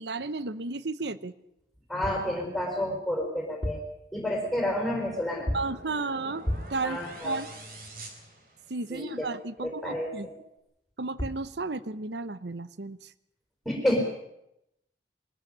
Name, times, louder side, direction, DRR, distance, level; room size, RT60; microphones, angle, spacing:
voice 1, 0.0-1.3 5.5-6.4 6.7-7.0 7.2-7.5 8.7-10.3 11.0-13.1, right 3 dB, 70° right, 15 dB, 0.9 m, -33 dB
sound 1, 1.8-2.3 3.4-4.0 5.5-5.8 6.4-6.9 10.9-11.0 11.2-11.5, equal, 20° left, 2.7 m, -33 dB
voice 2, 1.9-3.8 4.1-5.5 6.8-7.4 8.9-9.3 9.6-10.3 13.6-14.0, left 1 dB, ahead, 1 dB, 4.5 m, -30 dB
sound 2, 4.5-9.1, right 1 dB, 50° right, 3.8 m, -46 dB
22.0 x 13.5 x 10.0 m, 0.84 s
head